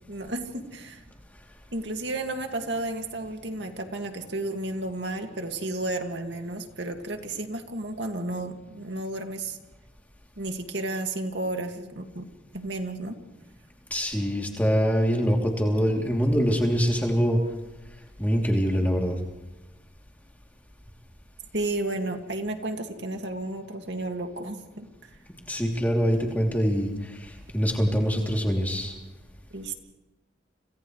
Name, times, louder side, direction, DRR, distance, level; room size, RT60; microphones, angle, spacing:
voice 1, 0.1-1.0 1.7-9.6 10.4-12.3 12.5-13.2 21.5-25.1 29.5-29.7, right 2 dB, 75° right, 4 dB, 2.1 m, -32 dB
voice 2, 13.9-17.4 18.2-19.1 25.5-26.9 27.5-28.9, equal, 10° left, 0 dB, 3.0 m, -24 dB
30.0 x 27.0 x 3.3 m, 1.1 s
head